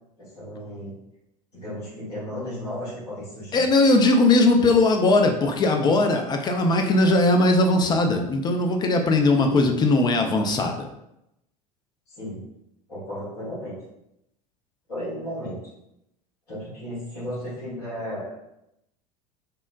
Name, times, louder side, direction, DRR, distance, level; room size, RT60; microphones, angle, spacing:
voice 1, 0.2-0.9 1.5-3.7 9.4-9.7 12.2-12.4 12.9-13.8 14.9-15.6 16.5-18.3, equal, 80° left, -9 dB, 1.4 m, -34 dB
voice 2, 3.5-10.9, left 2 dB, 20° left, 4 dB, 0.4 m, -19 dB
3.6 x 2.1 x 2.4 m, 0.83 s
figure-of-eight pair, 75°, 20 cm